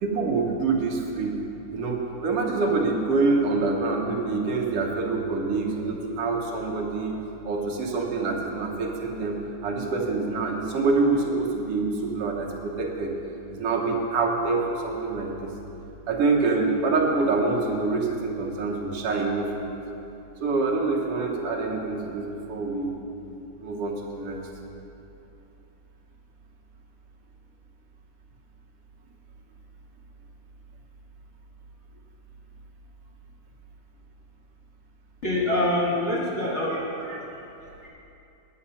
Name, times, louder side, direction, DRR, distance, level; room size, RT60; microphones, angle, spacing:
voice 1, 0.0-7.2 7.4-13.1 13.5-15.5 16.1-19.8 20.4-23.0 23.6-24.4, right 3 dB, 60° right, -1 dB, 1.9 m, -26 dB
voice 2, 35.2-37.2 37.8-37.9, left 1 dB, 30° left, -7 dB, 1.3 m, -26 dB
10.0 x 8.7 x 5.6 m, 2.9 s
omnidirectional pair, 3.5 m